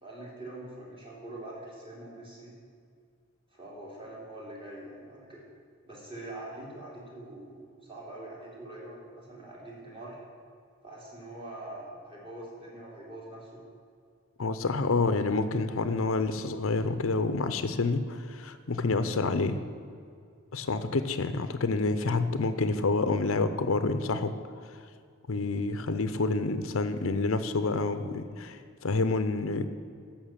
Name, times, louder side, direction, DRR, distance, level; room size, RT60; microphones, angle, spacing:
voice 1, 0.0-2.5 3.5-5.4 5.9-10.2 10.8-13.6 14.8-15.1, right 1 dB, 25° right, -5 dB, 3.1 m, -44 dB
voice 2, 14.4-19.6 20.5-24.3 25.3-29.7, left 3 dB, 70° left, 10 dB, 0.7 m, -28 dB
13.5 x 5.8 x 7.4 m, 2.2 s
head